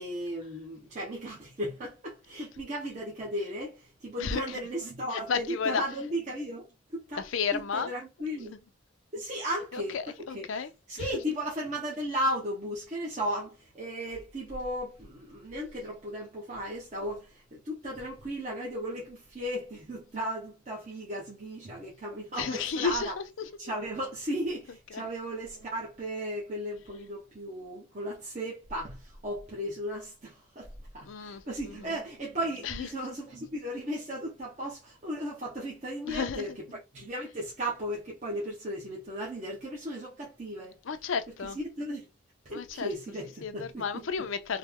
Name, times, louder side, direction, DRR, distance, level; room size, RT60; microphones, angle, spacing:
voice 1, 0.0-7.3 7.5-8.5 9.1-10.0 10.3-10.4 10.9-23.2 23.6-40.8 41.4-42.1 42.4-44.1, equal, 35° right, 0.8 m, -36 dB
voice 2, 4.2-4.6 5.1-5.8 7.2-7.9 9.7-11.1 22.3-23.2 24.9-25.0 31.0-31.9 32.6-32.9 36.0-36.5 40.8-41.6 42.5-42.9 43.4-44.6, left 6 dB, 75° left, 0.5 m, -32 dB
3.1 x 2.1 x 3.5 m
head